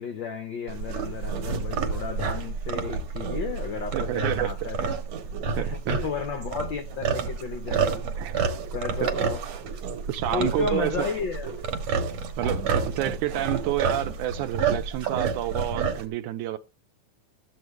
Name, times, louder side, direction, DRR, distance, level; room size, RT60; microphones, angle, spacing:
voice 1, 0.0-4.9 5.6-8.0 8.7-9.4 10.3-11.6 12.4-12.6, left 6 dB, 85° left, 1.0 m, -33 dB
sound 1, 0.7-16.1, right 5 dB, 60° right, 2.4 m, -29 dB
voice 2, 3.9-5.0 5.6-6.1 8.2-8.8 9.0-9.1 10.1-11.1 12.4-16.6, right 13 dB, 80° right, 2.2 m, -29 dB
13.5 x 8.1 x 3.3 m
omnidirectional pair, 3.6 m